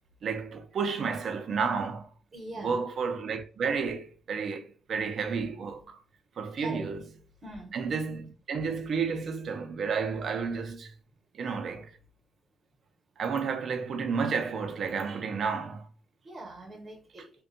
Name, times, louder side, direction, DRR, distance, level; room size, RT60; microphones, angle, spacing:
voice 1, 0.2-2.1 2.6-6.0 6.4-7.0 7.7-10.9 11.3-12.0 13.2-15.9, right 5 dB, 60° right, 0.5 m, -31 dB
voice 2, 2.3-2.8 6.6-6.9 7.4-7.7 16.2-17.3, right 2 dB, 40° right, 0.8 m, -42 dB
2.6 x 2.2 x 2.5 m
cardioid pair, 90°, 0 cm